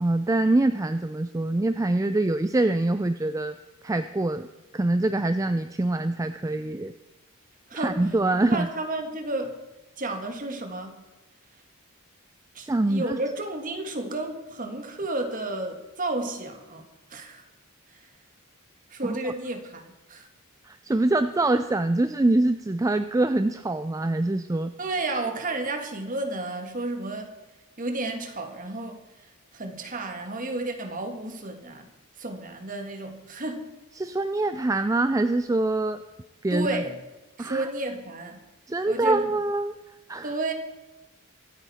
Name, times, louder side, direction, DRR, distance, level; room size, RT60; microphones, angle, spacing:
voice 1, 0.0-3.5 3.8-4.5 4.7-6.9 7.7-8.7 12.7-13.2 19.0-19.2 20.7-24.7 34.0-36.0 36.4-36.7 37.4-37.7 38.7-39.7 40.1-40.3, right 2 dB, 15° right, 10 dB, 0.3 m, -24 dB
voice 2, 7.7-9.6 10.0-11.0 12.6-17.4 17.9-18.1 18.9-20.3 24.8-27.3 27.8-31.9 32.2-33.7 36.5-37.0 37.4-38.4 38.9-39.3 40.2-40.5, right 2 dB, 40° right, 5 dB, 1.7 m, -32 dB
24.0 x 9.1 x 4.3 m, 1.1 s
head